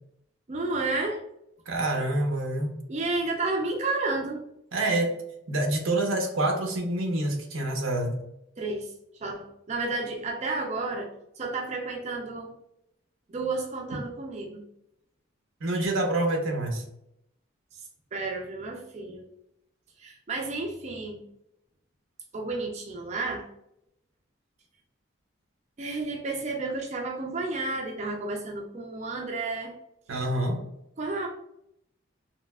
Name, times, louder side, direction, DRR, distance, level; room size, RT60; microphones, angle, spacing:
voice 1, 0.5-1.2 2.9-4.4 8.6-12.6 13.3-14.6 17.7-17.8 18.1-19.2 20.0-21.2 22.3-23.5 25.8-29.7 31.0-31.3, right 3 dB, 35° right, 0 dB, 0.4 m, -31 dB
voice 2, 1.7-2.7 4.7-5.2 5.5-8.2 15.6-16.8 30.1-30.6, right 1 dB, 85° right, 3 dB, 0.7 m, -27 dB
3.1 x 2.7 x 2.2 m, 0.78 s
head